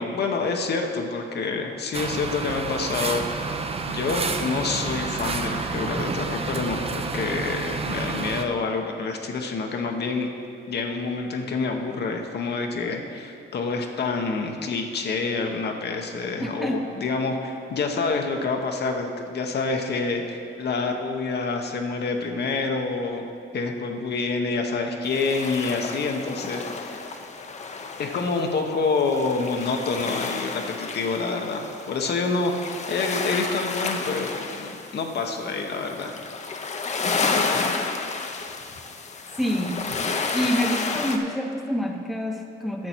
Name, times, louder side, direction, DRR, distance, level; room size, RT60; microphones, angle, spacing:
voice 1, 0.0-3.2 3.9-10.3 10.7-20.2 20.6-23.2 23.5-27.0 28.0-36.1, left 4 dB, 55° left, 3 dB, 1.0 m, -27 dB
sound 1, 1.9-8.4, right 4 dB, 30° right, 0.7 m, -29 dB
voice 2, 16.4-16.9 39.4-39.8 40.3-42.9, equal, ahead, 2 dB, 0.9 m, -27 dB
sound 2, 25.0-41.2, left 4 dB, 35° left, 0.8 m, -31 dB
10.5 x 6.8 x 4.5 m, 2.3 s
cardioid pair, 90°, 20 cm